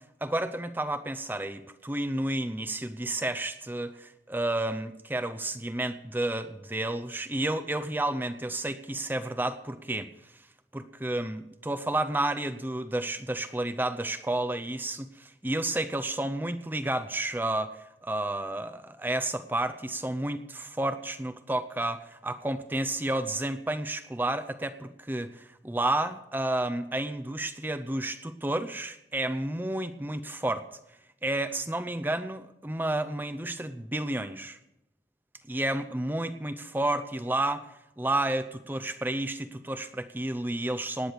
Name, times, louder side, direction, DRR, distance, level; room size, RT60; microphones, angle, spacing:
voice 1, 0.2-10.1 10.7-17.7 18.0-30.7 31.2-34.6 35.5-37.7 38.0-41.1, right 1 dB, 10° right, 10 dB, 0.6 m, -31 dB
18.5 x 9.6 x 6.7 m, 0.85 s
head